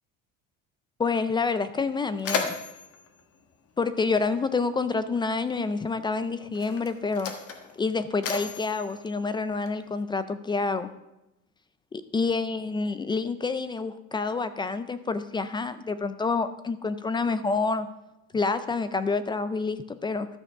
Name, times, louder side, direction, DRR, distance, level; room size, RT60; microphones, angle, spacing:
voice 1, 1.0-2.6 3.8-7.3 7.8-10.9 11.9-17.9 18.3-20.3, left 4 dB, 15° left, 12 dB, 0.3 m, -28 dB
Mechanisms, 1.3-1.4 1.7-4.5 5.5-5.6 6.4-10.0, left 5 dB, 45° left, 1.4 m, -36 dB
12.5 x 6.8 x 5.8 m, 0.92 s
cardioid pair, 165°, 32 cm